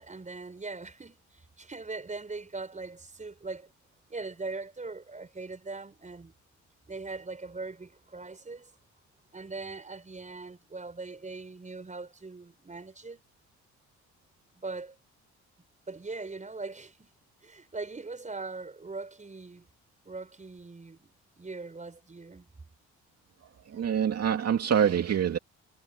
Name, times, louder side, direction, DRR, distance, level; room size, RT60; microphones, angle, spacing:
voice 1, 0.0-3.7 4.1-6.3 6.9-8.7 9.3-13.2 14.5-15.0 15.9-17.1 17.4-19.7 20.0-22.4, right 3 dB, 25° right, 6.6 m, -41 dB
voice 2, 23.7-25.4, right 8 dB, 55° right, 2.3 m, -25 dB
cardioid pair, 90°, 30 cm